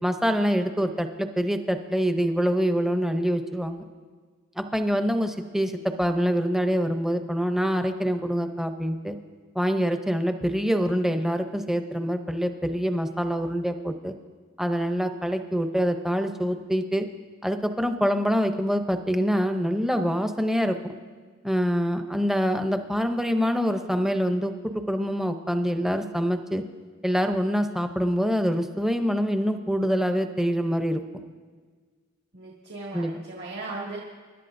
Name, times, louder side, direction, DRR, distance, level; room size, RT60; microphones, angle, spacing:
voice 1, 0.0-3.8 4.6-9.2 9.5-14.1 14.6-17.1 17.4-21.0 21.4-26.6 27.0-31.0 32.9-33.2, equal, ahead, 7 dB, 0.6 m, -25 dB
voice 2, 32.3-34.0, right 3 dB, 55° right, -4 dB, 1.9 m, -37 dB
28.0 x 11.5 x 2.6 m, 1.5 s
head